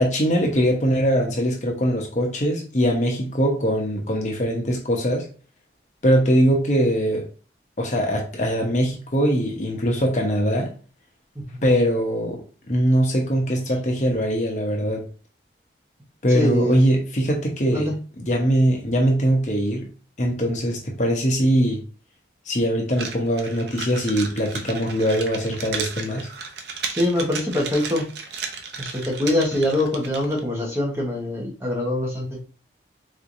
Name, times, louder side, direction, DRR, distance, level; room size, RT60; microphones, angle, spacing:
voice 1, 0.0-5.3 6.0-7.3 7.8-10.7 11.6-15.1 16.2-17.9 18.2-19.9 20.2-21.8 22.5-26.3, equal, 40° left, 0.8 m, -22 dB
voice 2, 16.3-16.8 17.7-17.9 26.9-28.1 28.8-32.4, left 1 dB, 15° right, 1.0 m, -24 dB
sound 1, 22.9-30.4, right 5 dB, 70° right, 0.6 m, -34 dB
3.9 x 3.2 x 2.6 m
head